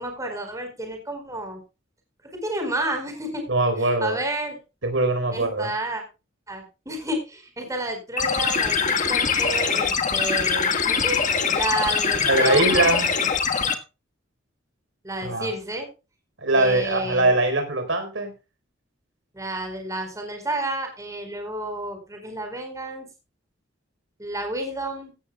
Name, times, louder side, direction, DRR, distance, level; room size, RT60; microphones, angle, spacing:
voice 1, 0.0-1.6 2.2-3.4 3.8-4.6 5.3-6.0 6.5-11.2 11.5-12.9 15.0-15.9 16.5-17.3 19.3-23.1 24.2-25.1, right 1 dB, 15° right, 4 dB, 4.6 m, -31 dB
voice 2, 3.5-4.2 4.8-5.7 12.2-13.1 15.2-15.5 16.4-18.3, right 2 dB, 75° right, 6 dB, 4.3 m, -22 dB
sound 1, 8.2-13.7, left 6 dB, 40° left, 1.6 m, -23 dB
16.5 x 12.5 x 2.3 m, 0.29 s
head